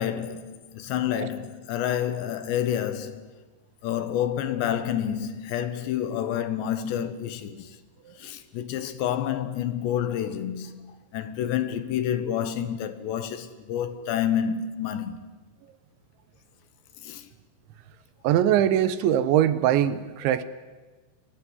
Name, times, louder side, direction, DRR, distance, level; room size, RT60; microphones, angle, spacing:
voice 1, 0.0-3.3 3.8-7.8 8.2-15.3 17.0-17.3, left 10 dB, 70° left, 3.2 m, -29 dB
voice 2, 18.2-20.4, right 11 dB, 75° right, 3.2 m, -22 dB
28.5 x 20.5 x 9.6 m
omnidirectional pair, 5.6 m